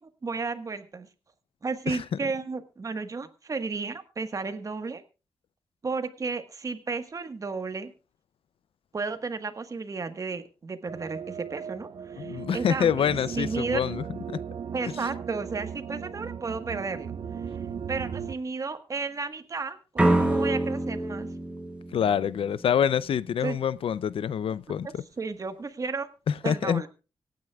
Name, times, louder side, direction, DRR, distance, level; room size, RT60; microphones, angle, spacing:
voice 1, 0.0-1.1 1.6-5.0 5.8-7.9 8.9-13.8 14.7-17.1 17.4-17.6 17.9-21.3 23.4-23.6 24.8-26.1 26.4-26.9, right 4 dB, 35° right, 1.4 m, -33 dB
sound 1, 10.9-18.4, right 7 dB, 60° right, 0.6 m, -37 dB
voice 2, 12.2-14.0 21.9-25.0 26.3-26.8, left 8 dB, 85° left, 0.5 m, -26 dB
sound 2, 20.0-22.9, right 1 dB, 10° right, 1.5 m, -26 dB
25.0 x 9.4 x 2.3 m
wide cardioid pair, 150°, 9 cm